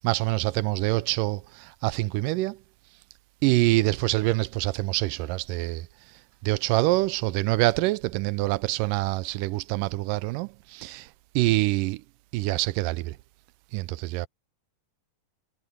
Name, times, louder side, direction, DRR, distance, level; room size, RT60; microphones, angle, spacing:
voice 1, 0.0-2.6 3.4-5.9 6.4-11.1 11.4-12.0 12.3-13.2 13.7-14.3, right 19 dB, 80° right, 2.1 m, -25 dB
omnidirectional pair, 3.9 m